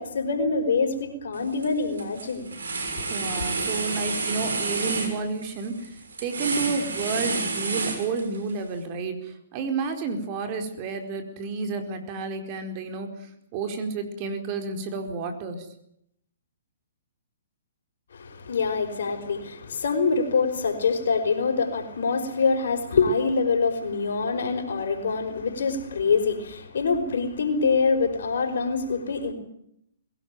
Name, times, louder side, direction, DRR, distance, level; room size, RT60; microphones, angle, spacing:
voice 1, 0.0-2.5 18.1-29.3, left 4 dB, 70° left, 5.2 m, -25 dB
sound 1, 1.3-1.7 2.0-8.5, right 3 dB, 80° right, 6.2 m, -30 dB
voice 2, 3.1-5.8 6.2-13.1 13.5-15.7, right 4 dB, 35° right, 4.5 m, -30 dB
22.0 x 17.5 x 9.2 m
hypercardioid pair, 135°, 0 cm